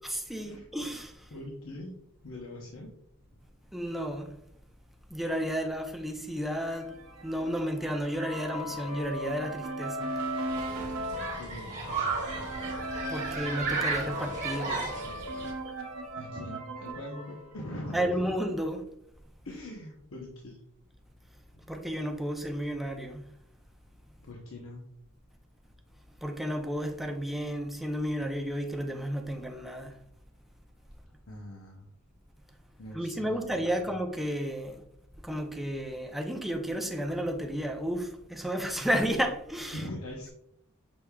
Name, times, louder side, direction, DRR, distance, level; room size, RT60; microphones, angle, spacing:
voice 1, 0.0-1.3 3.7-4.3 5.1-6.9 7.2-10.1 13.1-14.9 17.9-18.8 21.7-23.2 26.2-30.0 32.9-34.8 35.2-39.8, equal, ahead, 0.5 m, -32 dB
voice 2, 1.3-1.9 2.2-2.9 11.2-12.1 16.1-18.4 19.4-20.6 24.2-24.8 31.3-31.9 32.8-34.0 39.7-40.3, left 1 dB, 65° left, 0.8 m, -42 dB
sound 1, 6.6-18.4, right 1 dB, 80° right, 0.8 m, -38 dB
Human group actions, 10.5-15.5, right 4 dB, 35° right, 1.5 m, -34 dB
6.1 x 3.4 x 2.3 m
head